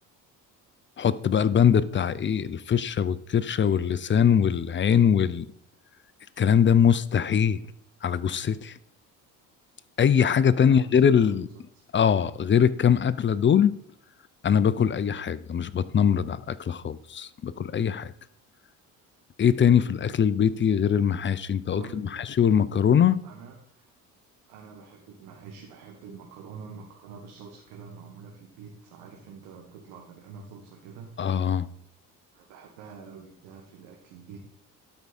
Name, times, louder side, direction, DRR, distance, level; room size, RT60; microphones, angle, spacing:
voice 1, 1.0-5.5 6.4-7.6 8.0-8.7 10.0-11.5 11.9-13.7 14.4-18.1 19.4-23.2 31.2-31.7, left 8 dB, 30° left, 0.6 m, -22 dB
voice 2, 10.5-11.8 21.7-22.3 23.2-23.9 24.5-31.2 32.3-34.4, right 5 dB, 80° right, 1.7 m, -46 dB
12.0 x 4.8 x 4.2 m
supercardioid pair, 75°, 39 cm